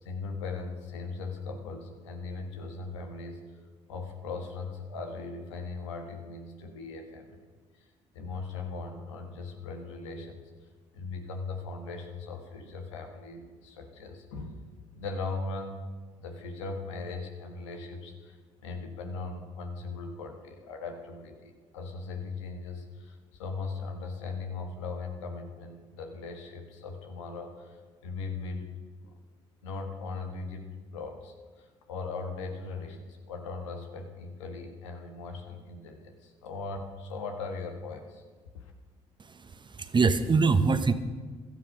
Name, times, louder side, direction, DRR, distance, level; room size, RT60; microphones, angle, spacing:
voice 1, 0.0-3.4 3.9-7.4 7.7-7.8 8.1-10.5 10.9-14.6 14.9-15.8 16.1-28.7 29.0-29.2 29.6-38.2 38.6-38.7, left 4 dB, 85° left, 4 dB, 1.6 m, -39 dB
voice 2, 39.2-40.9, right 4 dB, 30° right, 11 dB, 1.1 m, -24 dB
16.0 x 12.5 x 5.4 m, 1.4 s
hypercardioid pair, 55°, 15 cm